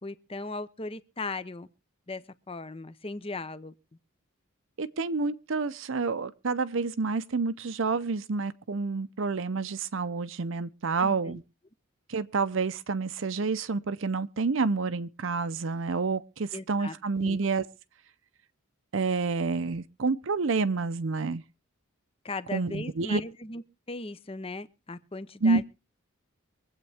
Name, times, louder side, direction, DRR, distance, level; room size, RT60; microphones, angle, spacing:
voice 1, 0.0-1.7 2.1-3.7 11.0-11.4 16.5-16.9 17.2-17.4 22.2-25.7, left 3 dB, 25° left, 0.7 m, -38 dB
voice 2, 4.8-11.4 12.1-17.6 18.9-21.4 22.5-23.2 25.4-25.7, right 4 dB, 65° right, 0.6 m, -29 dB
24.5 x 8.2 x 3.4 m
head